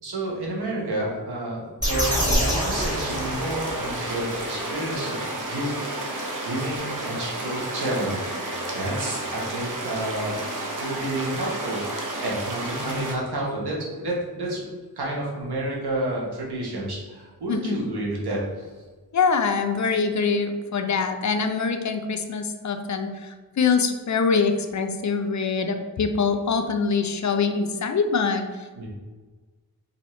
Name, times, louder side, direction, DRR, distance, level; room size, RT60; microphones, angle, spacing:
voice 1, 0.0-5.2 5.4-6.1 6.4-8.2 8.7-10.3 10.8-14.7 14.9-18.7 28.8-28.9, right 1 dB, 90° right, -4 dB, 1.1 m, -30 dB
sound 1, 1.8-3.9, equal, 10° right, 1.4 m, -25 dB
sound 2, 2.8-13.2, right 1 dB, 55° right, 0.8 m, -31 dB
voice 2, 17.5-17.8 19.1-28.9, left 5 dB, 50° left, 7 dB, 0.4 m, -24 dB
2.8 x 2.7 x 4.3 m, 1.3 s
wide cardioid pair, 60°, 38 cm